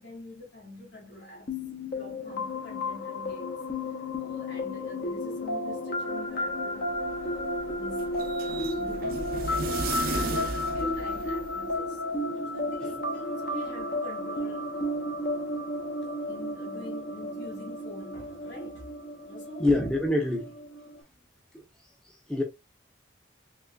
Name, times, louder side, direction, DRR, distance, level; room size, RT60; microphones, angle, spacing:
voice 1, 0.0-3.6 3.9-12.0 12.5-15.2 16.0-18.9 19.2-19.7, left 2 dB, 70° left, 2.2 m, -45 dB
sound 1, 1.5-21.0, left 1 dB, 55° left, 0.8 m, -33 dB
sound 2, 6.7-11.8, right 3 dB, 50° right, 0.5 m, -35 dB
voice 2, 19.6-20.5 21.5-21.6 22.0-22.4, left 2 dB, 5° left, 0.6 m, -27 dB
3.8 x 3.2 x 2.2 m
head